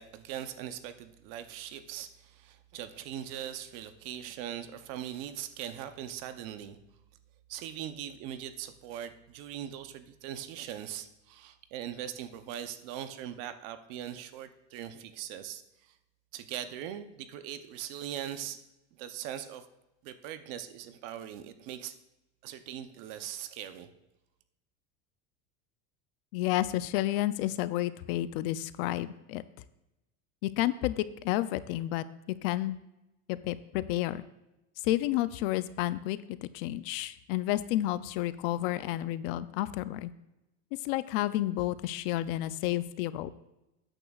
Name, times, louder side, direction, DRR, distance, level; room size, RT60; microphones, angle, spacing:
voice 1, 0.0-6.8 7.5-16.0 16.3-18.6 19.0-19.6 20.0-21.9 22.4-23.9, right 10 dB, 55° right, 10 dB, 0.7 m, -41 dB
voice 2, 26.3-29.4 30.4-32.0 32.4-32.8 33.3-34.2 34.8-40.1 40.8-43.4, left 15 dB, 65° left, 15 dB, 0.5 m, -31 dB
12.5 x 8.9 x 2.4 m, 0.93 s
cardioid pair, 170°, 32 cm